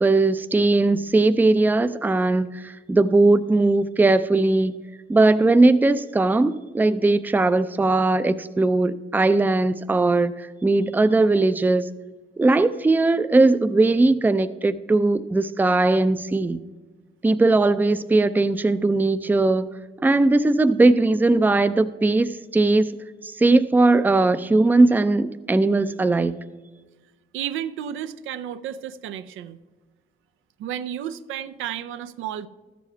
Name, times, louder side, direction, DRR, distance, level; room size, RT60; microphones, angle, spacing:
voice 1, 0.0-4.8 5.1-11.9 12.4-16.6 17.2-19.7 20.0-23.0 23.2-26.4, right 2 dB, 10° right, 12 dB, 0.4 m, -19 dB
voice 2, 27.3-29.6 30.6-32.5, right 10 dB, 85° right, 12 dB, 0.5 m, -32 dB
12.5 x 7.1 x 4.4 m, 1.3 s
cardioid pair, 90°, 20 cm